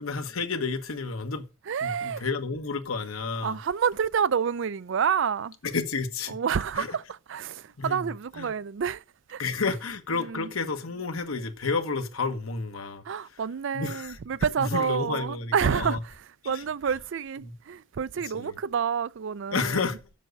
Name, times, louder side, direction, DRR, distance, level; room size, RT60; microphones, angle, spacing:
voice 1, 0.0-1.5 1.8-3.6 5.6-6.4 6.7-7.0 7.8-8.5 9.4-13.4 13.7-14.2 14.6-16.0 16.4-16.9 17.4-17.5 18.2-18.6 19.5-20.0, left 4 dB, 85° left, 1.3 m, -31 dB
voice 2, 1.7-2.2 3.4-5.5 6.3-7.0 7.3-9.0 9.3-9.4 10.3-10.5 13.1-16.0 16.5-19.8, right 7 dB, 60° right, 0.4 m, -28 dB
7.6 x 6.4 x 7.9 m
head